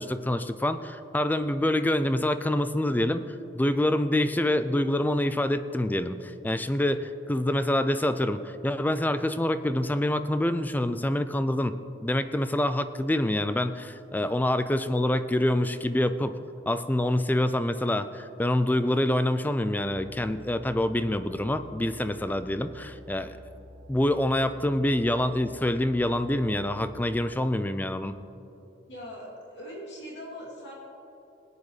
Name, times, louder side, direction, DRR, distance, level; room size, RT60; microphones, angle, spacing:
voice 1, 0.0-3.2 3.5-11.8 12.0-16.4 16.7-23.4 23.9-28.2, left 1 dB, 10° left, 11 dB, 0.4 m, -26 dB
sound 1, 19.8-27.3, left 1 dB, 20° right, 3.0 m, -49 dB
voice 2, 28.9-30.7, equal, 65° left, -5 dB, 2.8 m, -41 dB
19.0 x 9.6 x 3.2 m, 2.8 s
head